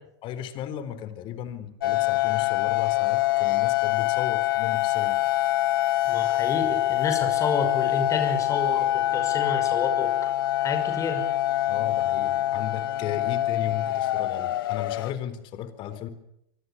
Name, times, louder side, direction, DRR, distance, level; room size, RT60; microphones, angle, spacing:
voice 1, 0.2-5.2 11.7-16.1, left 11 dB, 40° left, 12 dB, 3.9 m, -35 dB
sound 1, 1.8-15.1, left 15 dB, 70° left, 1.0 m, -25 dB
voice 2, 6.0-10.3 10.6-11.3, left 4 dB, 25° left, 6 dB, 5.6 m, -30 dB
25.0 x 24.5 x 7.1 m, 0.78 s
hypercardioid pair, 100°, 12 cm